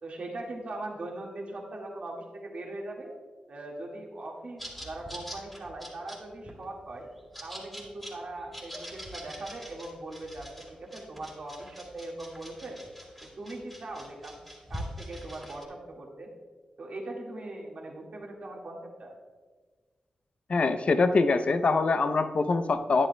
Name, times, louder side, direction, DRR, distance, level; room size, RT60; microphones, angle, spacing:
voice 1, 0.0-3.1 3.5-7.1 7.4-12.8 13.2-14.3 14.7-16.3 16.8-19.1, right 2 dB, 60° right, -2 dB, 1.8 m, -40 dB
sound 1, 4.6-15.7, equal, 5° left, 2.6 m, -44 dB
voice 2, 20.5-23.1, left 3 dB, 55° left, 9 dB, 0.6 m, -24 dB
11.0 x 10.5 x 2.2 m, 1.4 s
wide cardioid pair, 90°, 3 cm